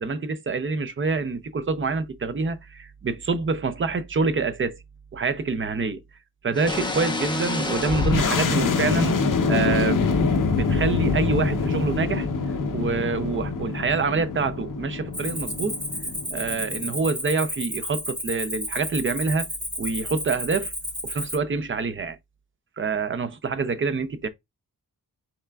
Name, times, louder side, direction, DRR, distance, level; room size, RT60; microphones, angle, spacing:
voice 1, 0.0-4.8 5.1-6.0 6.4-9.1 9.5-10.0 10.5-12.3 12.7-15.8 16.3-19.5 19.8-20.7 21.0-22.2 22.8-24.3, right 4 dB, 35° right, 0.6 m, -26 dB
sound 1, 6.5-9.3, left 2 dB, 10° left, 0.9 m, -30 dB
sound 2, 7.9-17.1, left 4 dB, 55° left, 0.8 m, -25 dB
Cricket, 15.1-21.4, equal, 15° right, 2.6 m, -32 dB
5.6 x 3.6 x 2.3 m
wide cardioid pair, 175°, 38 cm